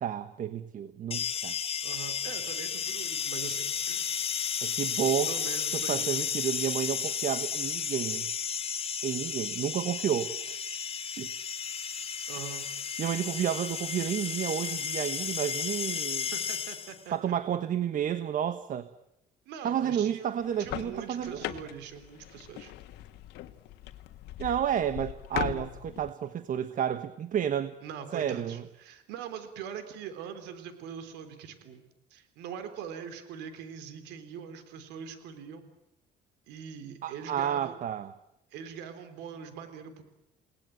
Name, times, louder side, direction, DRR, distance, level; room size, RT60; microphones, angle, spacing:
voice 1, 0.0-1.5 4.6-5.3 5.7-8.3 9.0-10.6 11.2-11.3 13.0-16.3 17.1-18.9 19.6-21.4 24.4-27.7 28.1-28.6 37.0-38.1, right 9 dB, 50° right, 13 dB, 1.3 m, -31 dB
sound 1, 1.1-17.1, left 7 dB, 35° left, 2.0 m, -33 dB
voice 2, 1.8-4.1 4.9-6.4 12.3-12.7 16.3-17.3 19.5-22.7 27.8-31.8 32.1-35.7 36.5-37.8 38.5-40.0, right 8 dB, 90° right, 9 dB, 3.7 m, -43 dB
sound 2, 20.4-26.1, left 14 dB, 85° left, 1.7 m, -40 dB
30.0 x 19.0 x 9.2 m, 0.86 s
cardioid pair, 110°, 17 cm